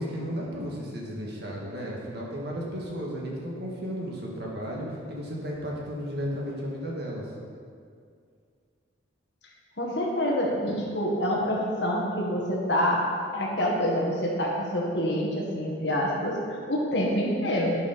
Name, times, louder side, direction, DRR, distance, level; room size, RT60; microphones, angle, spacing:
voice 1, 0.0-7.2, equal, 55° right, -3 dB, 1.8 m, -34 dB
voice 2, 9.8-13.0 13.3-17.8, equal, 60° left, -2 dB, 1.8 m, -27 dB
11.5 x 5.5 x 5.2 m, 2.2 s
head